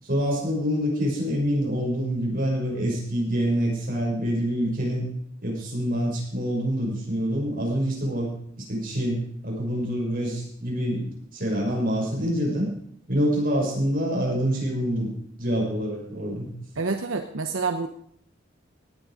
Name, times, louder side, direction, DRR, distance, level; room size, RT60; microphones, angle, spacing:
voice 1, 0.0-5.1 5.4-12.7 13.1-15.1 15.4-16.5, equal, 45° right, -2 dB, 6.5 m, -26 dB
voice 2, 16.8-17.9, right 4 dB, 85° right, 6 dB, 0.9 m, -27 dB
17.5 x 9.9 x 5.1 m, 0.66 s
head